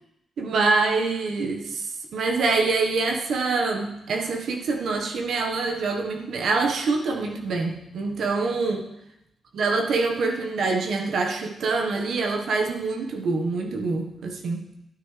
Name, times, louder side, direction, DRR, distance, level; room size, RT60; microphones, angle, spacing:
voice 1, 0.4-1.9 2.1-8.9 9.5-14.6, right 3 dB, 75° right, 2 dB, 1.5 m, -25 dB
12.0 x 9.4 x 3.4 m, 0.87 s
supercardioid pair, 55°, 0 cm